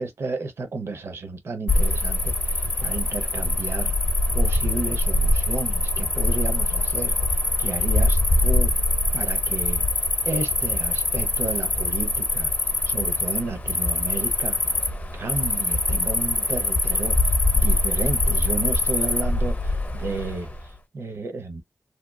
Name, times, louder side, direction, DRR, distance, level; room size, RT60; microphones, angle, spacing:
voice 1, 0.0-3.9 4.3-8.7 9.1-9.8 10.2-12.5 12.8-14.8 15.1-21.6, right 3 dB, 85° right, 0.8 m, -32 dB
Cricket, 1.7-20.6, left 2 dB, 40° left, 0.7 m, -23 dB
2.9 x 2.3 x 2.2 m
wide cardioid pair, 75°, 4 cm